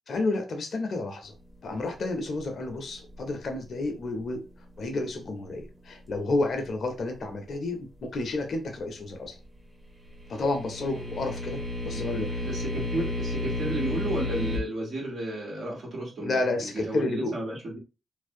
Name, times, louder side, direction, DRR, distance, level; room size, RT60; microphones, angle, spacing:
voice 1, 0.1-1.3 1.6-4.4 4.8-9.3 10.3-12.4 16.2-17.3, left 2 dB, 65° left, 0.5 m, -30 dB
sound 1, 10.1-14.6, left 1 dB, 30° right, 1.1 m, -32 dB
voice 2, 12.4-17.8, right 1 dB, 70° right, 1.3 m, -33 dB
2.6 x 2.0 x 2.5 m
supercardioid pair, 40°, 0 cm